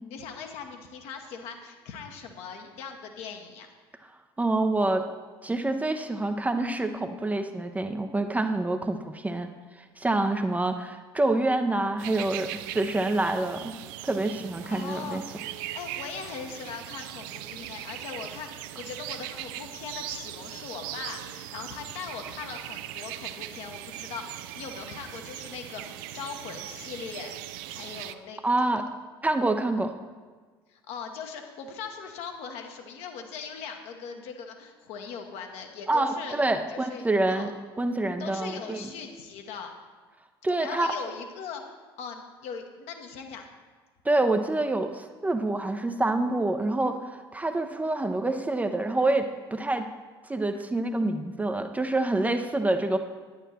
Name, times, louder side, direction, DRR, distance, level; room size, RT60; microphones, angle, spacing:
voice 1, 0.1-3.7 14.6-28.4 30.7-36.4 36.7-37.5 38.2-39.7 40.6-41.6 42.0-43.5, left 6 dB, 55° left, 4 dB, 1.1 m, -40 dB
voice 2, 4.4-5.0 5.4-9.5 10.0-13.7 14.0-15.2 28.4-28.8 29.2-29.9 35.9-37.5 37.8-38.8 40.4-40.9 44.0-49.9 50.3-53.0, right 2 dB, 10° right, 6 dB, 0.6 m, -27 dB
sound 1, 12.0-28.1, right 13 dB, 60° right, 0.4 m, -40 dB
10.0 x 8.6 x 4.3 m, 1.5 s
figure-of-eight pair, 60°, 13 cm